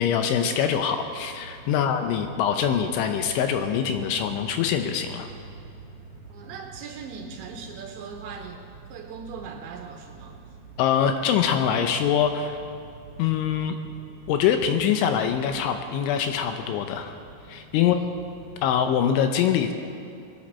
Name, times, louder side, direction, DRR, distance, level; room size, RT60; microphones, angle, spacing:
voice 1, 0.0-5.3 10.8-12.6 13.2-13.8 14.3-17.1 17.5-18.0 18.6-19.7, left 8 dB, 80° left, 6 dB, 2.9 m, -24 dB
sound 1, 1.0-18.9, right 4 dB, 40° right, 2.4 m, -46 dB
voice 2, 6.3-8.6 8.9-10.4 17.8-18.2, right 6 dB, 80° right, 3 dB, 2.8 m, -40 dB
20.5 x 11.5 x 4.3 m, 2.5 s
omnidirectional pair, 5.7 m